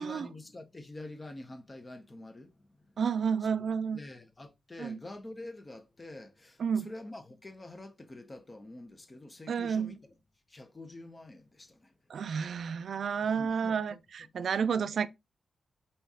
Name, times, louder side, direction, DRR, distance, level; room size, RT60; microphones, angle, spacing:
voice 1, 0.0-2.9 3.6-3.7 3.9-10.1 10.5-11.9 13.2-14.3 14.8-14.9, left 2 dB, 30° left, 1.0 m, -47 dB
voice 2, 3.0-4.0 4.8-5.0 6.6-6.9 9.5-10.0 12.1-15.1, right 6 dB, 75° right, 0.4 m, -31 dB
4.2 x 3.3 x 3.6 m
cardioid pair, 60°, 0 cm